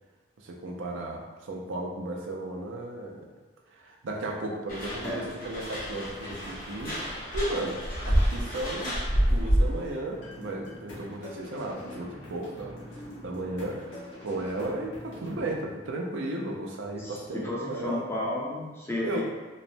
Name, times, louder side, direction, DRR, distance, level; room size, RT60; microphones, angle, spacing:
voice 1, 0.4-3.2 3.7-7.0 7.3-12.8 13.2-13.9 14.2-18.0 19.0-19.2, right 2 dB, 85° right, 0 dB, 0.5 m, -35 dB
sound 1, 4.7-9.9, equal, 45° left, 0.8 m, -28 dB
sound 2, 10.1-15.6, left 1 dB, 80° left, 1.0 m, -44 dB
voice 2, 17.0-19.2, left 1 dB, 15° left, -5 dB, 0.4 m, -32 dB
3.1 x 2.0 x 2.6 m, 1.2 s
head